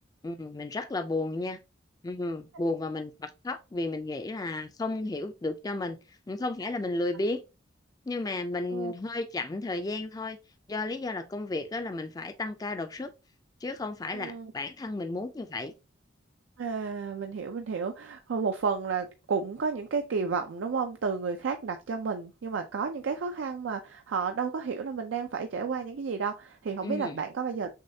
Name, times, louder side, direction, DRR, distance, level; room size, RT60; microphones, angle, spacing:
voice 1, 0.2-1.6 2.0-6.0 6.3-7.4 8.1-10.4 10.7-13.1 13.6-15.7 26.8-27.2, left 2 dB, 20° left, 0.3 m, -33 dB
voice 2, 14.1-14.5 16.6-27.7, right 5 dB, 80° right, 0.4 m, -32 dB
6.4 x 2.3 x 2.7 m
head